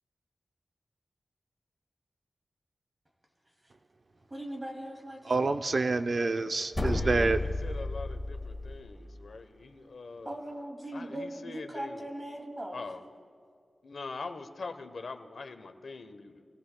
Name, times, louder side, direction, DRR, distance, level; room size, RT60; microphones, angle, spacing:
voice 1, 4.2-5.6 10.2-12.8, right 1 dB, 25° right, 1 dB, 2.3 m, -40 dB
voice 2, 5.3-7.4, right 3 dB, 50° right, 9 dB, 0.4 m, -27 dB
sound 1, 6.7-8.8, left 2 dB, 15° left, 1.6 m, -32 dB
voice 3, 6.8-10.4 10.9-12.1 12.7-13.0 13.8-16.5, left 4 dB, 70° left, 6 dB, 0.9 m, -43 dB
28.5 x 18.0 x 2.2 m, 2.3 s
wide cardioid pair, 110°, 0 cm